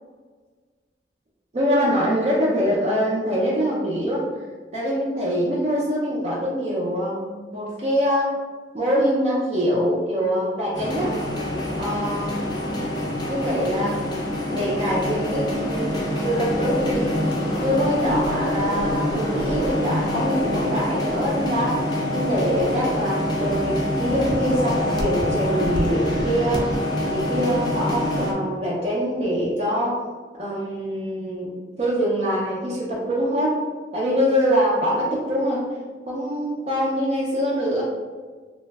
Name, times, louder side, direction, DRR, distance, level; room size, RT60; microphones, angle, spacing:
voice 1, 1.5-4.2 4.7-8.3 8.7-11.1 11.8-12.4 12.7-12.9 13.3-14.0 14.5-17.2 17.6-21.8 22.1-26.7 27.1-30.0 30.4-31.5 31.8-33.6 33.9-35.6 36.1-37.8, equal, 35° right, -6 dB, 0.4 m, -24 dB
sound 1, 10.7-28.3, left 1 dB, 25° left, 0.5 m, -25 dB
3.0 x 2.5 x 2.2 m, 1.5 s
head